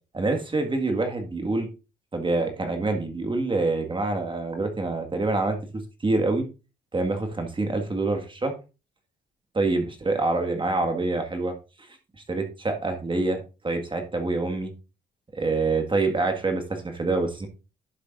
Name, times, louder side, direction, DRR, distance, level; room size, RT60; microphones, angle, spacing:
voice 1, 0.1-1.7 2.1-6.5 6.9-8.5 9.5-12.0 12.3-14.7 15.3-17.5, right 3 dB, 25° right, 5 dB, 1.9 m, -26 dB
11.5 x 6.8 x 2.6 m, 0.31 s
cardioid pair, 90°, 20 cm